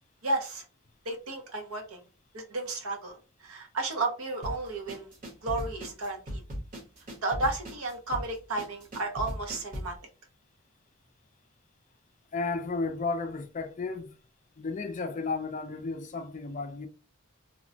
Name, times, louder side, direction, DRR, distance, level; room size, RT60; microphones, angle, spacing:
voice 1, 0.2-0.6 1.1-2.0 2.3-3.1 3.4-5.1 5.4-6.4 7.2-9.9, right 2 dB, 85° right, 0.8 m, -32 dB
sound 1, 4.4-10.0, equal, 40° right, 0.8 m, -38 dB
voice 2, 12.3-14.1 14.6-16.9, left 3 dB, 35° left, 0.4 m, -33 dB
3.0 x 2.0 x 2.6 m
head